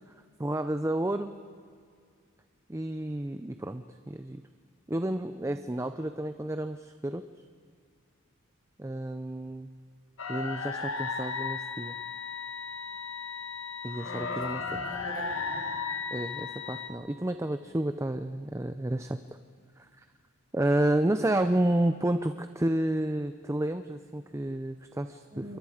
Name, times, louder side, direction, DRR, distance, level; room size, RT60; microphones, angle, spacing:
voice 1, 0.4-1.3 2.7-4.4 4.9-7.2 8.8-9.7 10.3-12.0 13.8-14.6 16.1-19.2 19.8-20.0 20.5-25.2, right 1 dB, 15° right, 9 dB, 0.5 m, -30 dB
sound 1, 10.2-16.9, left 5 dB, 65° left, 1.9 m, -35 dB
voice 2, 14.0-15.7 25.3-25.6, equal, 30° right, -1 dB, 6.0 m, -43 dB
28.5 x 23.5 x 5.0 m, 2.1 s
head